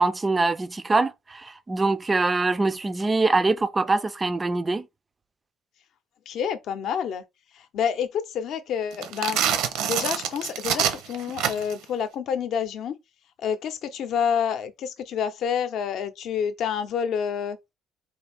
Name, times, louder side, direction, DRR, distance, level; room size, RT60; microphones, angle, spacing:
voice 1, 0.0-4.9, right 3 dB, 15° right, 0.3 m, -23 dB
voice 2, 6.3-7.2 7.5-9.4 9.8-13.0 13.4-17.6, left 7 dB, 55° left, 0.6 m, -28 dB
sound 1, 8.9-11.8, right 9 dB, 75° right, 0.7 m, -26 dB
4.3 x 2.6 x 3.4 m
cardioid pair, 150°, 0 cm